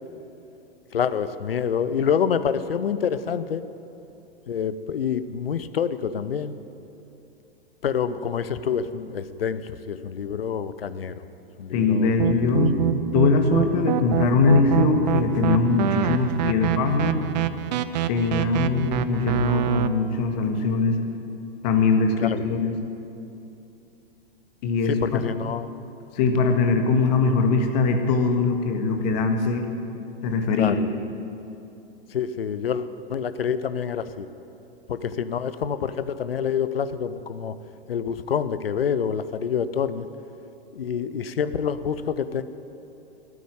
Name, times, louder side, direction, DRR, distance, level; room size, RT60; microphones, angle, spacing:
voice 1, 0.9-3.6 4.5-6.5 7.8-11.2 11.6-12.6 22.2-22.4 24.9-25.7 30.6-30.9 32.1-34.3 34.9-37.5 37.9-40.1 40.7-42.4, left 7 dB, 70° left, 13 dB, 0.8 m, -27 dB
voice 2, 11.7-12.8 13.1-17.2 18.1-21.0 21.6-22.7 24.6-24.9 26.1-29.6 30.2-30.8, left 4 dB, 45° left, 5 dB, 1.7 m, -21 dB
sound 1, 12.2-19.9, right 12 dB, 45° right, 0.6 m, -25 dB
13.5 x 9.3 x 9.4 m, 2.8 s
figure-of-eight pair, 100°, 31 cm